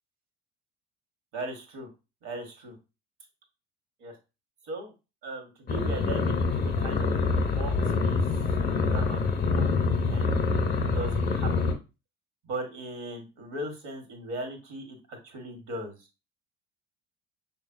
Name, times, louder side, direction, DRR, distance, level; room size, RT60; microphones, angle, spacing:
voice 1, 1.3-1.9 2.2-2.7 4.0-4.1 4.6-4.9 5.2-7.1 7.5-7.7 8.0-8.2 8.8-10.4 10.9-11.7 12.4-16.0, right 2 dB, 60° right, 3 dB, 1.5 m, -38 dB
sound 1, 5.7-11.7, left 4 dB, 30° left, 0.8 m, -26 dB
5.5 x 2.5 x 2.6 m, 0.29 s
hypercardioid pair, 65°, 33 cm